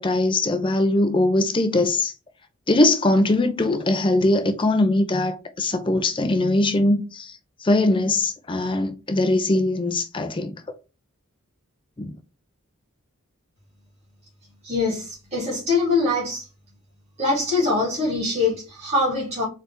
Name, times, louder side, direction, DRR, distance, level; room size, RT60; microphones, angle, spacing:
voice 1, 0.0-2.1 2.7-7.3 7.6-10.5 12.0-12.1, left 2 dB, 25° left, 0.5 m, -21 dB
voice 2, 14.6-16.4 17.2-19.4, left 3 dB, 30° right, 2.3 m, -23 dB
4.3 x 3.7 x 3.3 m
head